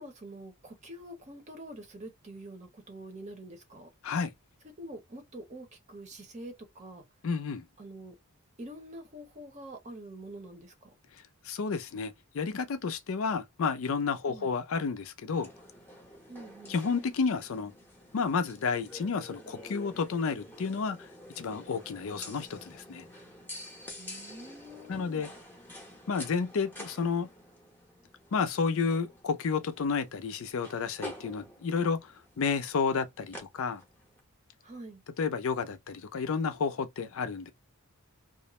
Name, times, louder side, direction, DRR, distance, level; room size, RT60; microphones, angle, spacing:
voice 1, 0.0-3.9 4.8-7.0 7.8-8.2 8.6-10.9 14.3-14.5 16.3-16.8 24.0-25.3 34.6-35.0, right 1 dB, 30° right, 0.8 m, -46 dB
voice 2, 7.2-7.6 11.4-15.5 16.7-17.7 18.1-21.1 21.4-23.1 24.9-25.3 26.1-27.3 28.3-33.8 35.2-37.5, left 5 dB, 65° left, 0.4 m, -31 dB
sound 1, 15.3-34.2, left 1 dB, 10° left, 0.7 m, -49 dB
2.4 x 2.0 x 2.9 m
head